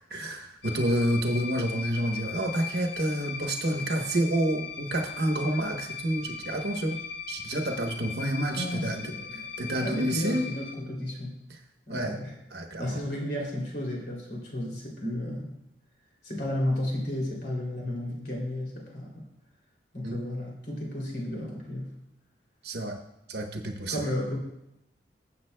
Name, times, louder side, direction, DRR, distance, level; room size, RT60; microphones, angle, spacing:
voice 1, 0.1-7.0 7.3-10.5 11.5-11.6 11.9-12.2 12.5-13.0 20.0-20.2 22.6-23.0 23.3-24.0, right 1 dB, 65° right, 4 dB, 1.0 m, -29 dB
sound 1, 0.6-10.7, left 6 dB, 90° left, 1.2 m, -39 dB
voice 2, 8.6-9.5 9.8-11.4 11.9-12.4 12.8-15.5 16.2-19.3 19.9-21.9 23.9-24.4, left 1 dB, 65° left, -2 dB, 2.8 m, -33 dB
21.0 x 7.3 x 2.2 m, 0.84 s
head